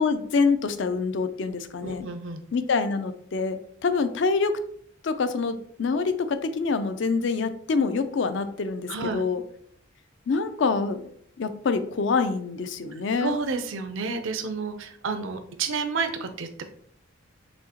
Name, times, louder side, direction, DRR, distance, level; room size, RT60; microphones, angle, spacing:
voice 1, 0.0-2.1 2.5-4.6 5.0-9.4 10.3-11.0 11.4-13.3, left 4 dB, 60° left, 10 dB, 0.4 m, -26 dB
voice 2, 1.8-2.4 8.9-9.3 12.9-16.6, right 4 dB, 70° right, 7 dB, 0.5 m, -30 dB
6.2 x 2.8 x 2.8 m, 0.64 s
head